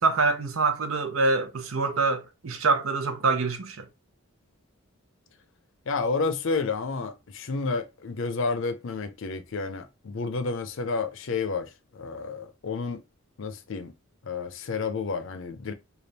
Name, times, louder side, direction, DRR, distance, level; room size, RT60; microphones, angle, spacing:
voice 1, 0.0-3.9, right 3 dB, 80° right, 0.7 m, -25 dB
voice 2, 5.9-13.0 13.4-13.9 14.2-15.7, left 4 dB, 65° left, 0.5 m, -30 dB
3.4 x 2.4 x 4.0 m
head